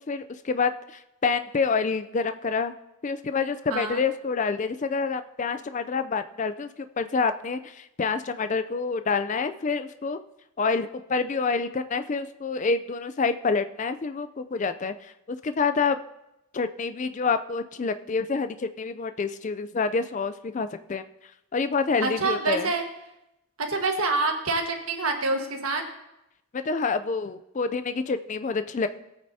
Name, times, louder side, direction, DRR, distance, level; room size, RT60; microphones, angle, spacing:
voice 1, 0.0-2.7 3.0-6.7 7.0-10.2 10.6-16.0 16.5-21.0 21.5-22.7 26.5-28.9, left 4 dB, 35° left, 11 dB, 0.4 m, -27 dB
voice 2, 3.7-4.0 22.0-22.8 23.6-25.8, right 3 dB, 70° right, 3 dB, 1.5 m, -26 dB
20.5 x 8.7 x 2.7 m, 0.88 s
head